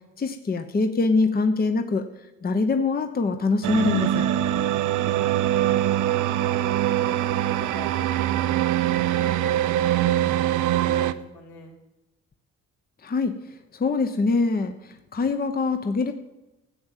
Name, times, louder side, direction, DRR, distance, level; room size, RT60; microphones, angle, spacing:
voice 1, 0.2-2.1 2.4-4.3 13.0-13.4 13.7-16.1, left 3 dB, 30° left, 7 dB, 0.9 m, -24 dB
sound 1, 3.6-11.1, right 12 dB, 85° right, 0.7 m, -23 dB
voice 2, 5.4-6.4 6.9-11.7, left 4 dB, 85° left, -1 dB, 3.7 m, -45 dB
14.0 x 7.9 x 7.4 m, 1.0 s
cardioid pair, 90°, 30 cm